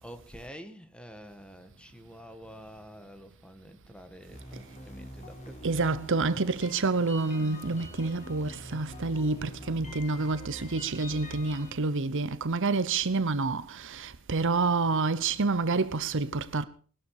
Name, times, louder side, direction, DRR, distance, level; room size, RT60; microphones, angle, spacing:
voice 1, 0.0-6.0, equal, 5° left, 1.6 m, -48 dB
sound 1, 4.3-11.7, equal, 35° left, 3.8 m, -45 dB
voice 2, 5.6-16.6, right 3 dB, 60° right, 0.9 m, -28 dB
20.0 x 12.5 x 4.9 m
head